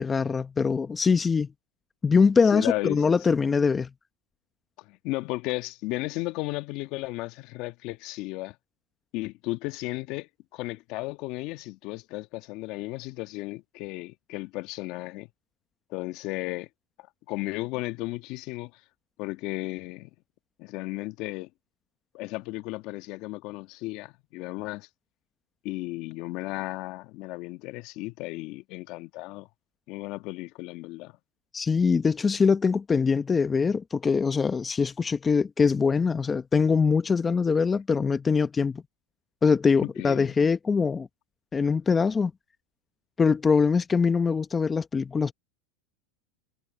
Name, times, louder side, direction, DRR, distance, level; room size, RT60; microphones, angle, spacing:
voice 1, 0.0-1.5 2.0-3.9 31.5-38.8 39.4-41.1 41.5-42.3 43.2-45.3, left 5 dB, 20° left, 0.9 m, -23 dB
voice 2, 2.5-3.0 4.9-8.5 9.1-15.3 15.9-16.7 17.3-18.7 19.2-20.1 20.6-21.5 22.1-24.9 25.6-29.5 29.9-31.1 39.8-40.3, left 21 dB, 55° left, 1.4 m, -34 dB
hypercardioid pair, 110°, 0 cm